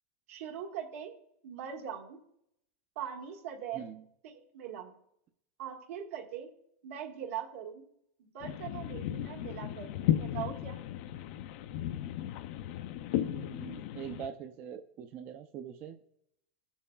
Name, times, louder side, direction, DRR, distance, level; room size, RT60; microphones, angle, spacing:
voice 1, 0.3-1.1 1.4-2.2 2.9-3.8 4.2-4.9 5.6-6.5 6.8-7.8 8.2-10.8, right 9 dB, 80° right, 1 dB, 1.5 m, -41 dB
sound 1, 8.4-14.3, left 12 dB, 45° left, 0.4 m, -35 dB
voice 2, 13.2-16.0, right 8 dB, 25° right, 7 dB, 0.4 m, -43 dB
16.5 x 7.0 x 2.2 m, 0.76 s
supercardioid pair, 180°, 7 cm